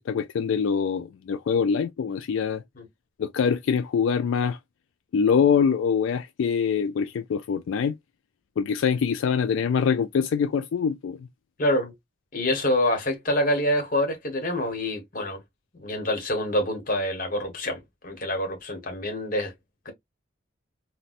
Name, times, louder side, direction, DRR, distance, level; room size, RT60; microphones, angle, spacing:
voice 1, 0.1-2.6 3.2-4.6 5.1-7.9 8.6-11.2, left 6 dB, 80° left, 0.3 m, -24 dB
voice 2, 11.6-11.9 12.3-15.4 15.8-19.5 19.8-19.9, left 1 dB, 45° left, 1.1 m, -26 dB
4.0 x 2.2 x 2.4 m
head